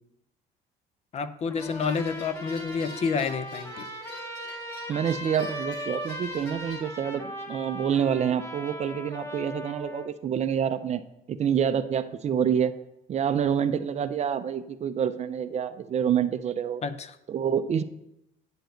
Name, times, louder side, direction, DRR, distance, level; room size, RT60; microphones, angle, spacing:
voice 1, 1.1-3.9 16.8-17.2, left 5 dB, 40° left, 13 dB, 0.6 m, -29 dB
Trumpet, 1.5-10.1, equal, 15° left, 1.0 m, -38 dB
sound 1, 1.6-6.8, left 2 dB, 85° left, 2.5 m, -46 dB
voice 2, 4.9-11.0 11.3-12.7 13.1-16.8 17.3-17.8, right 8 dB, 40° right, 12 dB, 0.5 m, -27 dB
9.1 x 6.9 x 3.9 m, 0.85 s
cardioid pair, 110°, 17 cm